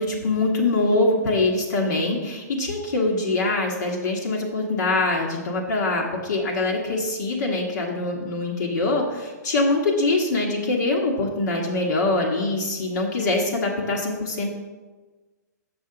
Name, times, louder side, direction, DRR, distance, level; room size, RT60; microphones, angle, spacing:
voice 1, 0.0-14.5, left 2 dB, 70° left, -1 dB, 1.3 m, -23 dB
6.4 x 6.2 x 3.8 m, 1.3 s
hypercardioid pair, 145°, 10 cm